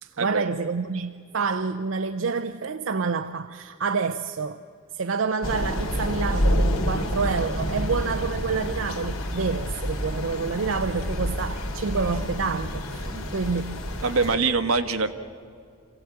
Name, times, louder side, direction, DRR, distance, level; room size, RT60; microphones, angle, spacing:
voice 1, 0.0-4.6 4.9-13.8, right 4 dB, 60° right, 0.6 m, -28 dB
Thunder / Rain, 5.4-14.3, equal, 75° left, 2.7 m, -28 dB
voice 2, 14.0-15.1, right 4 dB, 80° right, 1.3 m, -24 dB
26.0 x 16.0 x 8.7 m
head